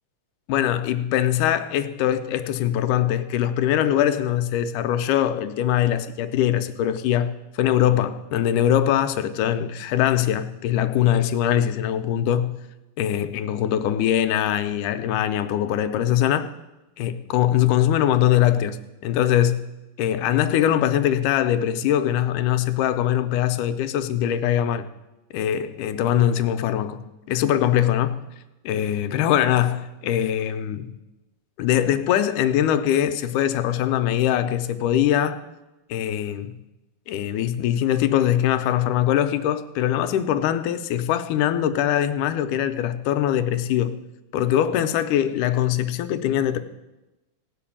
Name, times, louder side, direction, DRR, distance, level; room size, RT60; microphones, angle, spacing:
voice 1, 0.5-12.6 13.0-16.5 17.0-19.7 20.0-24.9 25.3-27.0 27.3-28.2 28.7-30.9 31.6-35.4 35.9-36.5 37.1-44.0 44.3-46.6, left 11 dB, 85° left, 2.1 m, -22 dB
17.0 x 5.9 x 8.6 m
omnidirectional pair, 3.7 m